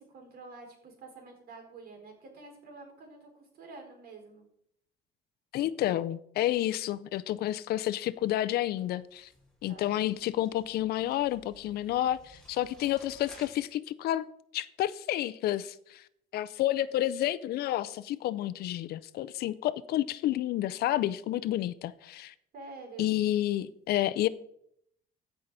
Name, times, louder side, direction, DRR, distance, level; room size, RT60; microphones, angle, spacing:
voice 1, 0.0-4.4 9.7-9.9 22.5-23.1, right 3 dB, 60° right, 4.4 m, -48 dB
voice 2, 5.5-9.3 9.6-14.3 14.5-16.0 16.3-22.3 23.0-24.3, left 13 dB, 70° left, 0.5 m, -30 dB
sound 1, 8.1-13.5, left 1 dB, 5° left, 3.9 m, -57 dB
15.0 x 5.7 x 4.1 m
cardioid pair, 110°, 17 cm